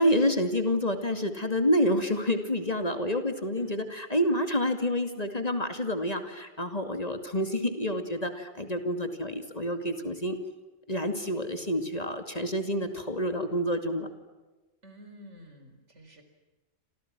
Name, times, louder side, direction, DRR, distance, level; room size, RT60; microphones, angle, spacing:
voice 1, 0.0-10.4 10.9-14.1, equal, 30° left, 7 dB, 2.5 m, -28 dB
voice 2, 14.8-16.2, equal, 70° right, 7 dB, 4.7 m, -50 dB
30.0 x 27.0 x 6.1 m, 1.2 s
omnidirectional pair, 1.3 m